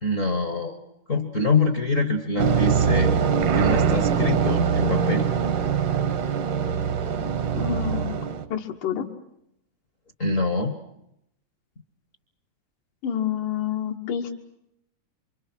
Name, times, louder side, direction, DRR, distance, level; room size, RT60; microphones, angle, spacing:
voice 1, 0.0-0.8 1.1-3.1 3.5-5.3 10.2-10.7, left 3 dB, 60° left, 7 dB, 0.8 m, -24 dB
sound 1, 2.4-8.4, right 7 dB, 70° right, 1.0 m, -23 dB
Explosion, 3.4-5.2, right 5 dB, 90° right, 2.9 m, -29 dB
voice 2, 7.5-8.1 8.5-9.1 13.0-14.4, left 9 dB, 85° left, 1 dB, 3.1 m, -28 dB
28.0 x 25.0 x 6.2 m, 0.78 s
omnidirectional pair, 3.6 m